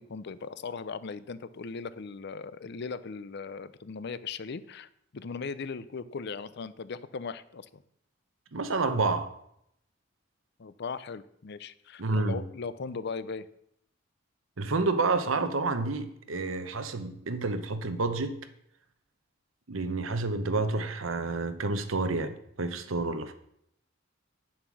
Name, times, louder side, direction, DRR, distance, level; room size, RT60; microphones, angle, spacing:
voice 1, 0.1-7.8 10.6-13.5, left 5 dB, 55° left, 0.5 m, -38 dB
voice 2, 8.5-9.3 12.0-12.4 14.6-18.4 19.7-23.3, right 3 dB, 85° right, 0.9 m, -29 dB
9.1 x 7.3 x 6.1 m
head